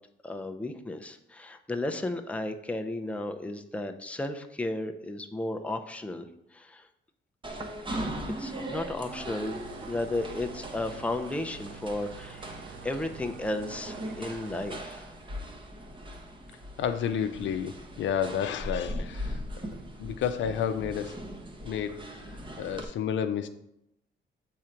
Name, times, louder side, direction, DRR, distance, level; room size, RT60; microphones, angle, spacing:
voice 1, 0.2-6.9 8.3-15.2, left 2 dB, 5° left, 5 dB, 0.6 m, -34 dB
sound 1, 7.4-22.8, equal, 25° right, 1.0 m, -39 dB
sound 2, 9.0-14.9, right 6 dB, 80° right, 0.6 m, -47 dB
voice 2, 16.8-19.4 20.0-21.2 21.6-22.0 22.6-23.5, left 8 dB, 70° left, 8 dB, 0.6 m, -30 dB
7.3 x 3.8 x 4.5 m, 0.79 s
cardioid pair, 90°, 20 cm